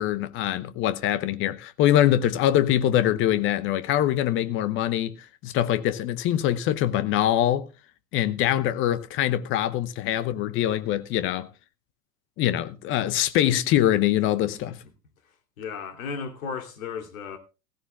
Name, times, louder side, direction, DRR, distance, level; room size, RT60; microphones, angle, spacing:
voice 1, 0.0-5.1 5.4-7.7 8.1-11.5 12.4-14.8, left 12 dB, 25° left, 0.8 m, -23 dB
voice 2, 15.6-17.4, left 5 dB, 55° left, 3.0 m, -34 dB
16.0 x 15.5 x 2.3 m
figure-of-eight pair, 100°, 49 cm